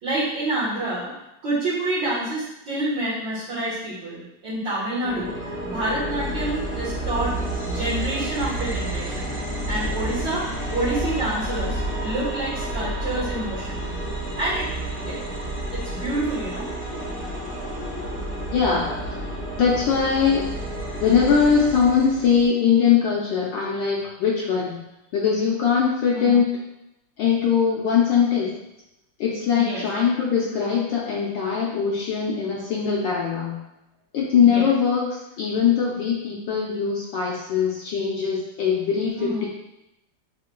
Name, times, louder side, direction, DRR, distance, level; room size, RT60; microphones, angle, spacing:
voice 1, 0.0-1.1 1.4-7.3 7.6-9.4 9.7-14.0 14.4-15.3 15.8-16.7 26.1-26.4 29.5-29.8 34.4-34.7 39.2-39.5, right 1 dB, 60° right, -12 dB, 2.0 m, -28 dB
sound 1, 5.0-22.5, right 1 dB, 10° left, 0.8 m, -30 dB
voice 2, 18.5-19.2 19.6-20.4 21.0-24.8 25.1-26.5 27.2-28.5 29.2-33.6 34.1-39.5, left 6 dB, 70° left, -4 dB, 1.3 m, -21 dB
7.5 x 3.2 x 2.2 m, 0.89 s
omnidirectional pair, 2.3 m